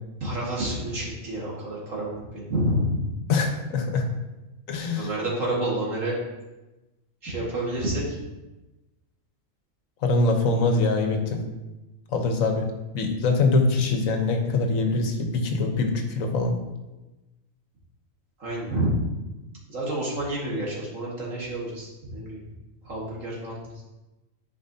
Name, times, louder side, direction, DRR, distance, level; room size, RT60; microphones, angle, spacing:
voice 1, 0.2-3.1 5.0-6.2 7.2-8.2 18.4-19.0 19.7-22.4 22.8-23.7, right 1 dB, 75° right, -4 dB, 2.2 m, -29 dB
voice 2, 3.3-4.1 4.7-5.1 10.0-11.4 12.1-12.7 12.9-16.6, left 3 dB, 90° left, 4 dB, 1.3 m, -23 dB
11.0 x 4.7 x 2.7 m, 1.1 s
omnidirectional pair, 1.4 m